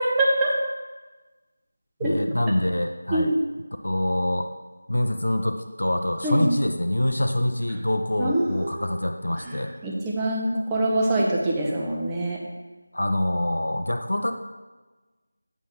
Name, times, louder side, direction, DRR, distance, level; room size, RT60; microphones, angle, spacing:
voice 1, 0.2-0.5 2.0-2.1 3.1-3.4 6.2-6.5 8.2-8.7 9.8-12.4, right 1 dB, 10° right, -4 dB, 0.7 m, -24 dB
voice 2, 2.0-3.3 3.8-4.5 4.9-9.7 12.9-14.3, left 1 dB, 80° left, 5 dB, 0.6 m, -25 dB
8.1 x 3.6 x 4.5 m, 1.2 s
figure-of-eight pair, 170°, 0 cm